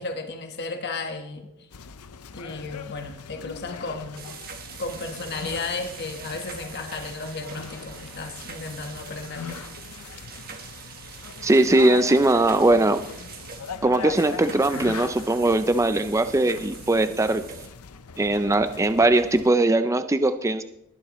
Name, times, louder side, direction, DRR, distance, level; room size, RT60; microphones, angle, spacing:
voice 1, 0.0-1.5 2.3-4.3 4.8-9.5, left 3 dB, 50° left, 4 dB, 1.3 m, -34 dB
sound 1, 1.7-19.5, left 6 dB, 85° left, 0.7 m, -41 dB
sound 2, 4.2-17.7, right 6 dB, 40° right, 1.4 m, -43 dB
voice 2, 11.4-13.0 13.8-17.4 18.2-20.6, right 2 dB, 15° right, 10 dB, 0.4 m, -20 dB
20.5 x 11.0 x 3.1 m, 0.81 s
head